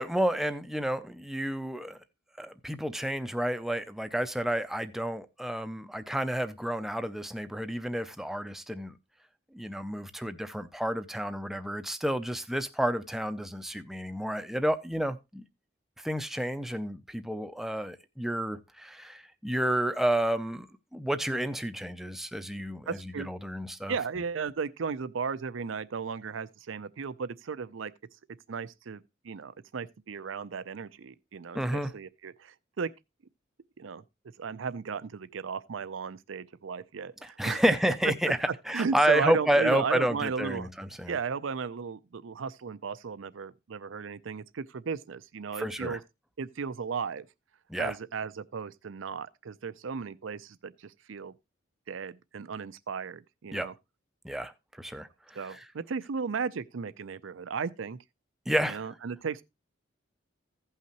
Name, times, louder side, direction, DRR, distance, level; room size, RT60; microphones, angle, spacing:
voice 1, 0.0-2.0 2.4-8.9 9.5-15.4 16.0-24.0 31.5-31.9 37.2-38.4 38.7-41.2 45.6-46.0 47.7-48.0 53.5-53.7 54.2-54.5 54.8-55.6 58.5-58.9, right 1 dB, ahead, 0.5 m, -30 dB
voice 2, 22.9-23.3 23.9-27.9 28.5-32.9 33.8-34.0 34.4-37.6 38.5-40.7 41.1-46.0 46.4-47.3 47.8-51.3 51.9-53.7 55.4-58.0 58.7-59.4, right 5 dB, 80° right, 0.5 m, -35 dB
15.5 x 5.7 x 2.9 m
head